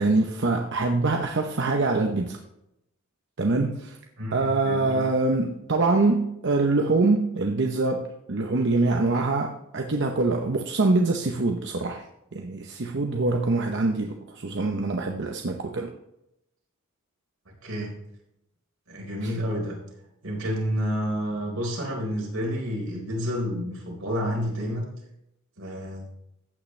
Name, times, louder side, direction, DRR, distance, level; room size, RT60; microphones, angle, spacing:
voice 1, 0.0-2.4 3.4-4.0 4.3-12.0 12.3-15.9 19.2-19.3, right 3 dB, 55° right, 3 dB, 0.8 m, -24 dB
voice 2, 4.2-5.0 17.6-17.9 18.9-19.8 20.2-24.9 25.6-26.1, equal, 80° right, -2 dB, 4.3 m, -29 dB
15.0 x 8.7 x 3.3 m, 0.84 s
head